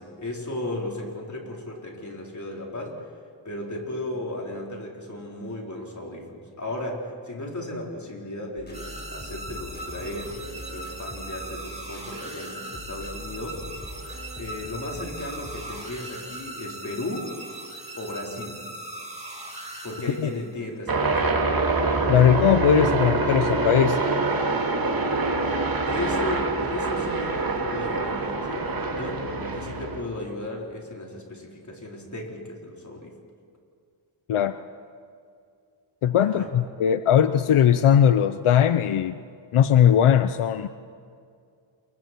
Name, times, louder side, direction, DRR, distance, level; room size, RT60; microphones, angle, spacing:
voice 1, 0.0-3.2 3.4-13.6 14.4-17.3 18.0-18.6 19.8-21.4 25.9-33.1 36.2-36.5, left 1 dB, 35° left, -1 dB, 4.6 m, -35 dB
sound 1, 8.6-15.8, equal, 20° left, 5.0 m, -42 dB
sound 2, 8.7-20.6, right 1 dB, 15° right, 2.9 m, -39 dB
sound 3, 20.9-30.0, right 3 dB, 45° right, 2.7 m, -25 dB
voice 2, 22.1-24.0 34.3-34.5 36.0-39.2 39.5-40.7, left 9 dB, 85° left, 11 dB, 0.8 m, -19 dB
28.5 x 23.0 x 4.6 m, 2.3 s
wide cardioid pair, 95°, 49 cm